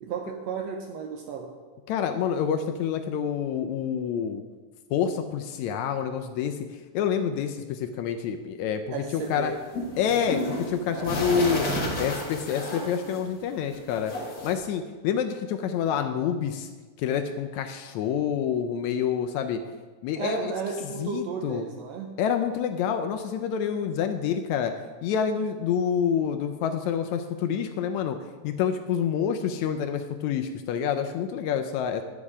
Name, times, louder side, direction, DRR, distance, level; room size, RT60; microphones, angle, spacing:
voice 1, 0.0-1.5 8.9-9.6 10.8-11.9 20.2-22.1, right 5 dB, 75° right, 3 dB, 1.6 m, -34 dB
voice 2, 1.9-4.4 4.9-6.6 6.9-9.5 10.0-11.7 12.0-14.1 14.4-16.7 17.0-19.6 20.0-20.5 21.0-21.7 22.2-24.7 25.0-28.2 28.4-32.0, left 8 dB, 80° left, 7 dB, 1.8 m, -27 dB
sound 1, 9.1-13.5 13.7-14.5, left 1 dB, 45° left, 1.3 m, -32 dB
10.0 x 7.3 x 4.8 m, 1.3 s
omnidirectional pair, 3.5 m